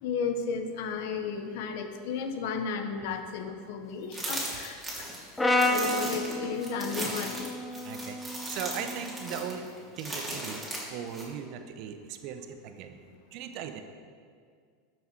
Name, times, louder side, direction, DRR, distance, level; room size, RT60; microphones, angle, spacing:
voice 1, 0.0-7.5 10.2-10.3, left 6 dB, 70° left, 7 dB, 1.0 m, -34 dB
sound 1, 4.1-11.2, right 1 dB, 5° right, 3.0 m, -37 dB
Brass instrument, 5.4-9.6, left 1 dB, 10° left, 0.8 m, -31 dB
voice 2, 7.8-9.7 9.9-10.6 10.9-13.0 13.3-13.8, right 8 dB, 55° right, 7 dB, 0.9 m, -38 dB
13.0 x 6.3 x 4.7 m, 2.1 s
supercardioid pair, 120°, 0 cm